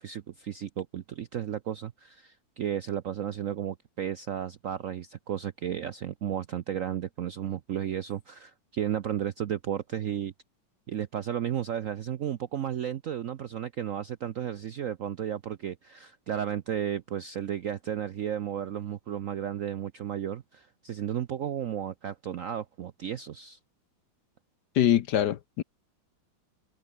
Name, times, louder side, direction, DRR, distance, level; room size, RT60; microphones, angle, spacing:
voice 1, 0.0-10.3 10.9-23.6, right 9 dB, 65° right, 0.8 m, -33 dB
voice 2, 24.7-25.6, left 11 dB, 65° left, 1.3 m, -24 dB
omnidirectional pair, 2.2 m